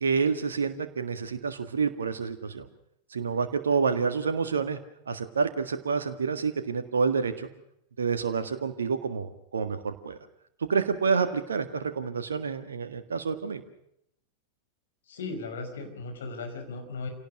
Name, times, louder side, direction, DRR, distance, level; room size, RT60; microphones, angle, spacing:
voice 1, 0.0-2.7 3.1-4.8 5.1-7.5 8.0-10.2 10.7-13.6, right 5 dB, 70° right, 8 dB, 1.7 m, -28 dB
voice 2, 15.1-17.1, left 3 dB, 65° left, 5 dB, 5.6 m, -37 dB
28.0 x 18.0 x 6.4 m, 0.73 s
figure-of-eight pair, 90°, 0 cm